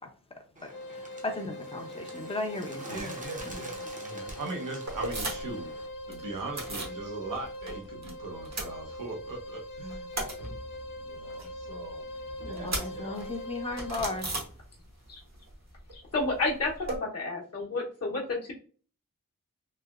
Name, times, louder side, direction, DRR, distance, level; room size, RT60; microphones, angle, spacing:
voice 1, 0.6-3.1 3.5-3.7 4.1-4.3 12.5-14.4, left 2 dB, 15° left, 3 dB, 0.7 m, -36 dB
Bird, 0.6-5.9, right 1 dB, 25° right, 0.7 m, -46 dB
sound 1, 0.7-14.4, left 1 dB, 80° left, 0.6 m, -42 dB
voice 2, 2.9-5.7 6.1-10.1 11.0-12.0 12.4-13.3, right 3 dB, 75° right, 0 dB, 0.9 m, -40 dB
sound 2, 4.9-5.6 5.9-7.0 7.3-8.1 8.4-9.4 9.7-15.1 15.3-17.0, right 2 dB, 55° right, 1.0 m, -37 dB
voice 3, 15.9-18.5, left 3 dB, 50° left, -4 dB, 1.0 m, -31 dB
3.2 x 2.7 x 2.4 m, 0.40 s
wide cardioid pair, 105°, 33 cm